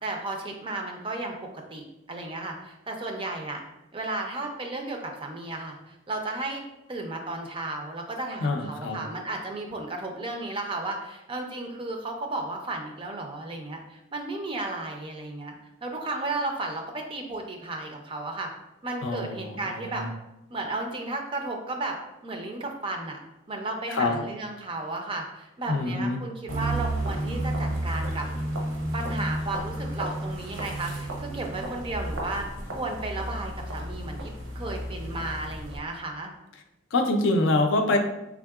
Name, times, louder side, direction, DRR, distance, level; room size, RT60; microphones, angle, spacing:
voice 1, 0.0-3.6 3.9-6.6 6.9-15.5 15.8-18.5 18.8-20.0 20.5-22.0 22.2-23.2 23.5-28.3 28.9-32.5 32.7-36.3, right 2 dB, 25° right, 3 dB, 0.4 m, -34 dB
voice 2, 8.4-9.0 19.0-20.1 23.9-24.2 25.7-26.2 36.9-38.0, left 2 dB, 60° left, 4 dB, 0.4 m, -25 dB
sound 1, 26.5-35.8, right 1 dB, 80° right, 0.8 m, -32 dB
3.6 x 3.5 x 2.3 m, 0.93 s
head